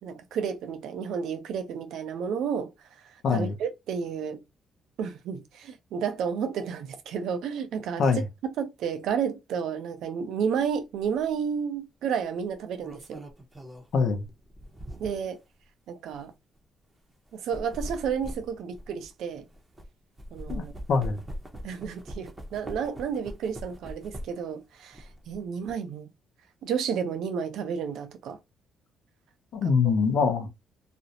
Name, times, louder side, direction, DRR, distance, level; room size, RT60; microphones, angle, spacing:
voice 1, 0.0-2.7 3.0-4.4 5.0-8.0 8.6-13.2 15.0-15.4 15.9-16.3 17.3-19.5 20.3-20.7 21.6-26.1 26.6-28.4 30.2-30.3, right 7 dB, 80° right, 0.5 m, -31 dB
voice 2, 3.2-3.5 8.0-8.3 13.9-14.3 20.5-21.2 29.5-30.5, left 5 dB, 65° left, 0.6 m, -24 dB
sound 1, 11.0-11.2 12.5-15.4 16.0-16.2 17.3-19.9 20.2-24.5 24.9-25.7, equal, 15° right, 0.7 m, -41 dB
2.5 x 2.0 x 2.8 m
cardioid pair, 90°, 0 cm